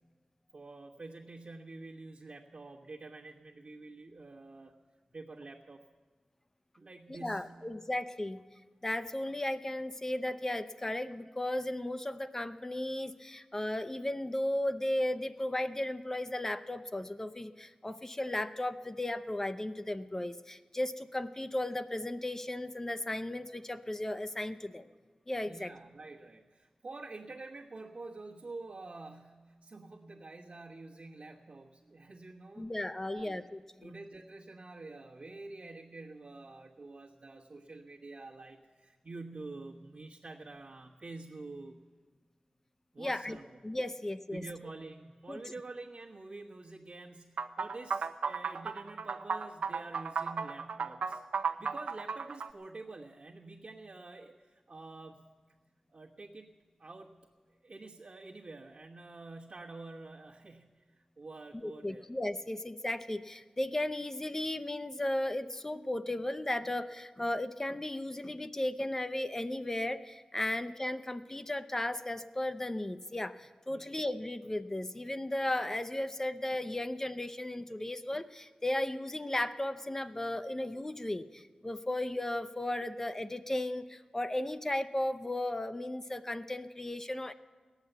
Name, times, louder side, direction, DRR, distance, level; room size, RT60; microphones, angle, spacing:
voice 1, 0.5-4.7 5.1-5.9 6.8-7.6 25.4-32.7 33.0-33.4 33.8-41.8 42.9-43.6 44.3-51.2 51.6-55.3 55.9-56.5 56.8-57.2 57.6-62.1 73.7-74.0, right 3 dB, 60° right, -7 dB, 1.2 m, -48 dB
voice 2, 7.1-8.4 8.8-24.9 25.3-25.7 32.6-33.9 43.0-43.4 43.6-44.4 45.3-45.4 61.6-87.3, left 1 dB, 20° left, 11 dB, 0.6 m, -35 dB
sound 1, 47.4-52.5, right 5 dB, 75° right, 0.6 m, -34 dB
17.5 x 10.5 x 8.0 m, 1.4 s
wide cardioid pair, 100°, 2 cm